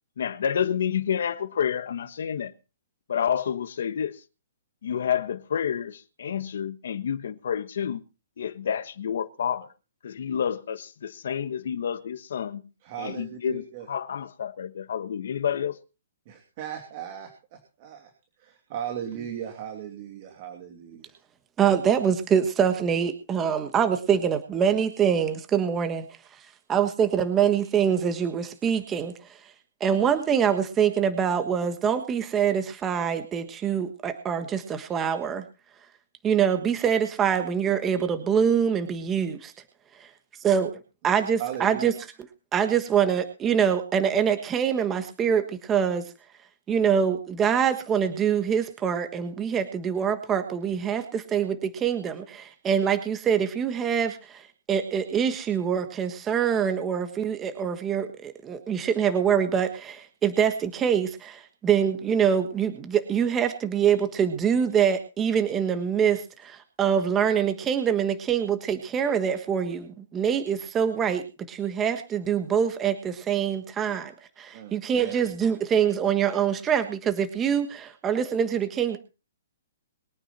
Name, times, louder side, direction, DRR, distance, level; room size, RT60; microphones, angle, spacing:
voice 1, 0.2-2.5 3.1-4.2 4.8-8.0 8.4-9.7 10.0-12.6 13.0-15.8, left 8 dB, 65° left, 1.4 m, -29 dB
voice 2, 12.8-13.9 16.3-18.1 18.4-21.2 41.4-41.9 73.8-73.9 74.5-75.2, right 9 dB, 30° right, 2.8 m, -37 dB
voice 3, 21.6-26.1 26.7-29.4 29.8-35.4 36.2-39.5 40.0-40.1 40.4-41.9 42.5-46.0 46.7-74.1 74.4-79.0, right 8 dB, 15° right, 1.4 m, -25 dB
22.5 x 9.3 x 4.3 m
hypercardioid pair, 170°, 0 cm